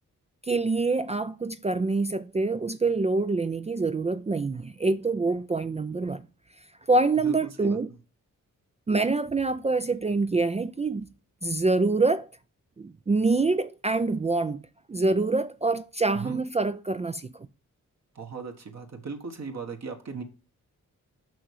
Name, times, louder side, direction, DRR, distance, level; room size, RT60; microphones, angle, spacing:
voice 1, 0.5-6.2 6.9-7.9 8.9-11.1 11.4-12.3 12.8-14.6 14.9-17.3, right 3 dB, 20° right, 0.4 m, -25 dB
voice 2, 7.2-7.8 16.1-16.4 18.1-20.2, right 4 dB, 50° right, 1.4 m, -38 dB
6.2 x 5.4 x 4.7 m
cardioid pair, 75°, 33 cm